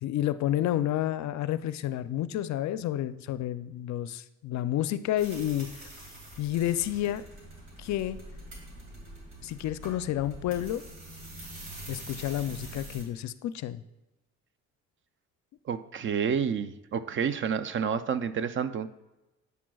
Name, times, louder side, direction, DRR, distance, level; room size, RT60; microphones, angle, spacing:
voice 1, 0.0-5.9 6.4-7.2 7.8-8.2 9.4-10.8 11.9-13.8, left 12 dB, 65° left, 14 dB, 0.4 m, -30 dB
sound 1, 5.2-13.0, right 1 dB, 60° right, 2.5 m, -45 dB
voice 2, 15.7-18.9, right 7 dB, 40° right, 13 dB, 0.4 m, -29 dB
8.2 x 7.3 x 2.3 m, 1.0 s
cardioid pair, 90°, 30 cm